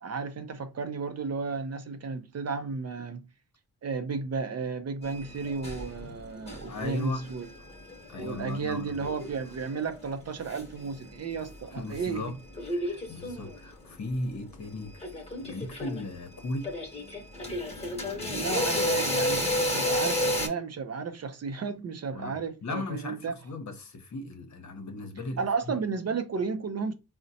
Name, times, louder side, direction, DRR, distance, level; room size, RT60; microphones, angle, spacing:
voice 1, 0.0-3.2 3.8-7.5 8.2-12.3 18.3-23.3 25.4-26.9, right 5 dB, 40° right, 0.5 m, -33 dB
sound 1, 5.0-12.1 12.4-13.7 14.6-14.7 15.0-20.5, left 1 dB, 15° left, 1.0 m, -32 dB
voice 2, 6.7-7.3 8.1-9.1 11.7-12.3 12.7-15.0 15.4-16.7 22.1-25.4 25.7-25.8, left 2 dB, 45° left, 0.8 m, -37 dB
3.8 x 2.1 x 2.7 m
cardioid pair, 55°, 38 cm